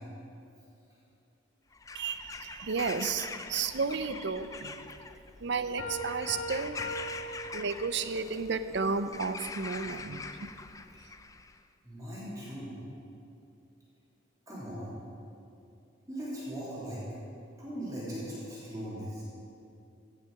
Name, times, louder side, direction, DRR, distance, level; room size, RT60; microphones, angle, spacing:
Bird vocalization bird call bird song / Crow, 1.7-11.6, left 4 dB, 15° left, 0.3 m, -44 dB
voice 1, 1.9-4.8 5.4-6.8 7.5-10.5, right 4 dB, 60° right, 11 dB, 0.6 m, -33 dB
Piano, 5.8-8.3, equal, 90° left, 1.7 m, -39 dB
voice 2, 11.8-12.9 14.5-15.0 16.1-17.0 17.6-19.2, equal, 15° right, -9 dB, 3.0 m, -39 dB
16.0 x 6.7 x 6.5 m, 2.6 s
head